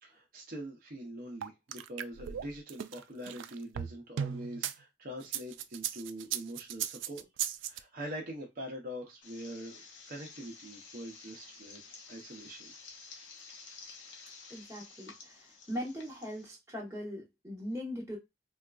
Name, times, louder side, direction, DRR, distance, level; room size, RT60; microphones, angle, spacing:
voice 1, 0.0-7.3 7.6-12.7, equal, 50° right, 0.7 m, -44 dB
sound 1, 1.4-4.7 5.2-7.8, right 10 dB, 85° right, 0.3 m, -36 dB
sound 2, 9.2-16.6, left 4 dB, 85° left, 0.8 m, -52 dB
voice 2, 14.5-18.2, equal, 15° right, 1.0 m, -40 dB
4.2 x 2.3 x 2.4 m
head